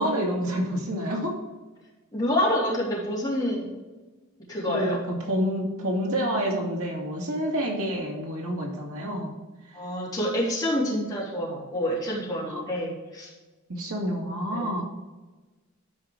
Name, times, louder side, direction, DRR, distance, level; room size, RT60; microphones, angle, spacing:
voice 1, 0.0-1.4 4.7-9.3 12.5-12.6 13.7-14.8, equal, 80° right, -1 dB, 2.2 m, -28 dB
voice 2, 2.1-3.7 4.5-5.0 9.7-13.3 14.5-14.8, equal, 15° left, -6 dB, 3.2 m, -27 dB
12.5 x 5.0 x 3.8 m, 1.2 s
head